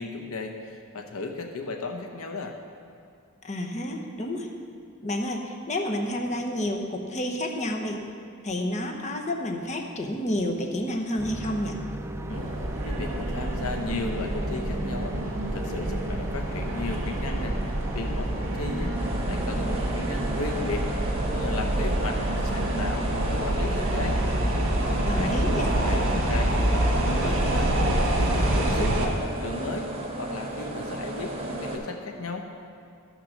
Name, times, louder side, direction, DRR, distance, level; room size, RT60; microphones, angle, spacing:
voice 1, 0.0-2.5 12.3-12.5 12.9-20.9 21.3-24.2 25.1-27.7 28.2-29.9 30.2-32.5, left 3 dB, 75° left, 3 dB, 0.9 m, -35 dB
voice 2, 3.4-4.5 5.0-8.0 8.4-11.8 25.0-25.7, left 1 dB, 35° left, 2 dB, 1.0 m, -30 dB
sound 1, 11.2-20.9, right 1 dB, 10° right, 0.4 m, -36 dB
sound 2, 12.3-29.1, right 1 dB, 65° right, 1.7 m, -27 dB
sound 3, 18.9-31.7, right 1 dB, 30° right, 1.4 m, -34 dB
13.0 x 6.1 x 6.5 m, 2.4 s
head